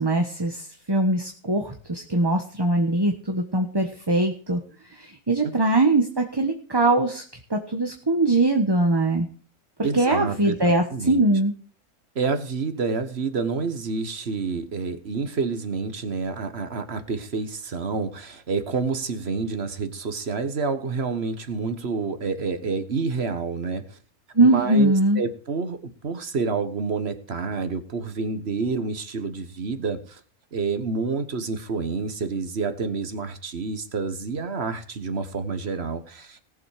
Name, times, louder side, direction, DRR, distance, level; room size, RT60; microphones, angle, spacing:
voice 1, 0.0-4.6 4.9-7.2 7.5-9.3 9.9-11.5 24.3-25.2, right 2 dB, 20° right, 4 dB, 1.2 m, -21 dB
voice 2, 9.8-10.6 10.9-11.2 12.1-24.0 24.4-30.2 30.5-36.4, right 4 dB, 50° right, 10 dB, 1.5 m, -28 dB
18.5 x 7.4 x 4.9 m, 0.44 s
omnidirectional pair, 1.5 m